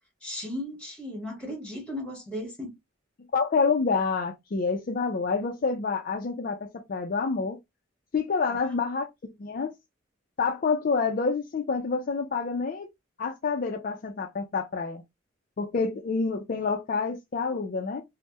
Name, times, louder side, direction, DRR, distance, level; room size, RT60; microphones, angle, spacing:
voice 1, 0.2-2.7 8.6-8.7, left 1 dB, 5° left, 1.3 m, -36 dB
voice 2, 3.3-7.6 8.1-9.1 9.4-9.7 10.4-12.9 13.2-15.0 15.6-18.0, left 4 dB, 45° left, 0.4 m, -28 dB
3.3 x 2.1 x 2.8 m
head